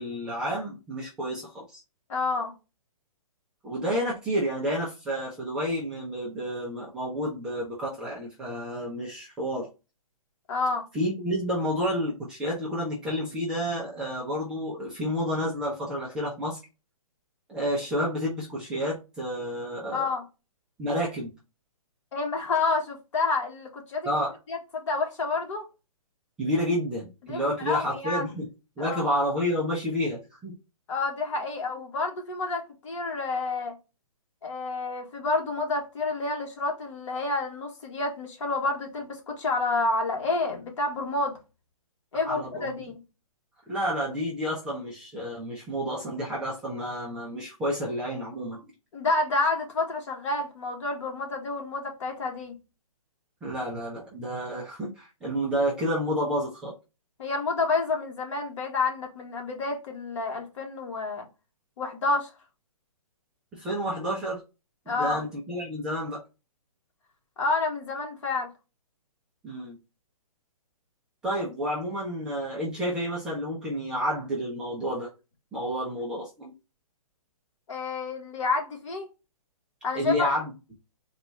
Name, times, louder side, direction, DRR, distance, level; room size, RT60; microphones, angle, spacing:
voice 1, 0.0-1.8 3.6-9.7 10.9-16.6 17.5-20.1 20.8-21.3 24.0-24.3 26.4-28.5 28.8-30.5 42.2-42.7 43.7-48.6 53.4-56.7 63.5-64.4 64.9-66.2 69.4-69.8 71.2-75.1 75.5-76.5 79.9-80.5, equal, 5° right, 0.4 m, -30 dB
voice 2, 2.1-2.5 10.5-10.9 19.9-20.2 22.1-24.1 24.5-25.6 27.2-28.2 28.8-29.0 30.9-33.7 34.4-41.4 42.1-43.0 48.9-52.5 57.2-61.3 61.8-62.3 64.9-65.2 67.4-68.5 77.7-79.1 79.8-80.3, left 3 dB, 55° left, 1.5 m, -29 dB
4.1 x 2.3 x 3.9 m
hypercardioid pair, 165°, 19 cm